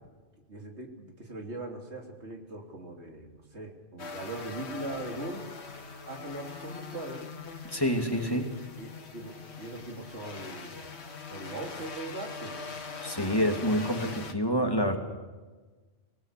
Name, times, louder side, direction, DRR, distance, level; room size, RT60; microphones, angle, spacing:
voice 1, 0.5-5.4 6.1-7.2 8.2-10.8 11.3-12.6, right 2 dB, 70° right, 2 dB, 3.4 m, -40 dB
sound 1, 4.0-14.3, left 4 dB, 70° left, 1.8 m, -42 dB
voice 2, 7.7-8.5 13.0-15.0, equal, 20° left, 3 dB, 2.7 m, -27 dB
25.5 x 18.0 x 6.7 m, 1.3 s
omnidirectional pair, 1.2 m